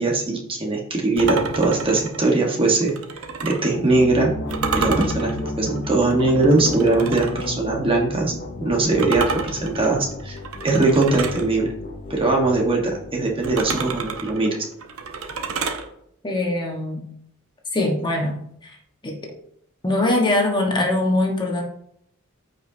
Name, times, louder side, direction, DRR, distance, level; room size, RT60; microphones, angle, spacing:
voice 1, 0.0-2.9 3.4-4.3 4.7-8.3 8.6-10.4 10.6-11.7 12.1-14.7, right 2 dB, 25° right, 0 dB, 1.4 m, -20 dB
sound 1, 1.2-3.7 4.5-7.5 9.0-11.5 13.4-15.8, right 4 dB, 90° right, 1.0 m, -29 dB
sound 2, 3.7-14.3, left 1 dB, 50° left, 1.0 m, -33 dB
voice 2, 16.2-17.0 17.7-18.3 18.6-18.7 19.0-19.3 19.8-21.6, left 2 dB, 20° left, 0 dB, 1.4 m, -22 dB
14.0 x 5.3 x 2.8 m, 0.73 s
head